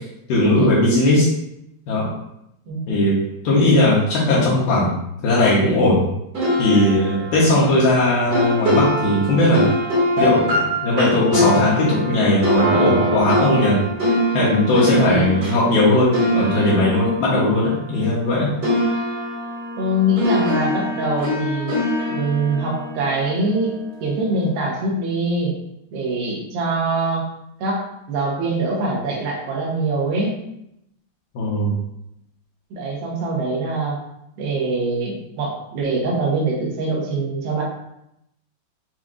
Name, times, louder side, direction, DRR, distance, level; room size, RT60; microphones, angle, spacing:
voice 1, 0.3-1.3 1.9-2.1 2.9-3.2 3.4-4.9 5.2-6.1 6.6-9.6 10.2-13.8 14.3-18.5 31.4-31.8, left 1 dB, 75° left, -7 dB, 2.4 m, -18 dB
voice 2, 2.7-3.0 15.0-15.3 19.8-21.7 22.1-23.7 24.0-25.5 25.9-27.3 27.6-30.4 32.7-34.0 34.4-37.6, right 2 dB, 75° right, -3 dB, 2.7 m, -23 dB
sound 1, 6.3-18.3 18.6-23.8, equal, 45° right, 1.5 m, -23 dB
7.2 x 2.5 x 2.4 m, 0.82 s
omnidirectional pair, 4.3 m